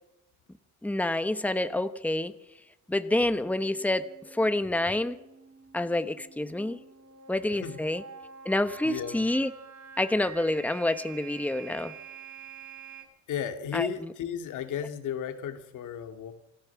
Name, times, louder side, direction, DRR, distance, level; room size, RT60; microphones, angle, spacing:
voice 1, 0.8-2.3 2.9-5.2 5.7-6.8 7.3-8.0 8.4-9.5 10.0-11.9 13.7-14.1, left 1 dB, 5° left, 10 dB, 1.2 m, -28 dB
sound 1, 3.4-13.0, right 6 dB, 70° right, 7.2 m, -48 dB
voice 2, 8.8-9.2 13.3-16.3, left 8 dB, 80° left, 6 dB, 2.3 m, -34 dB
27.5 x 15.0 x 7.2 m, 0.88 s
cardioid pair, 90°, 30 cm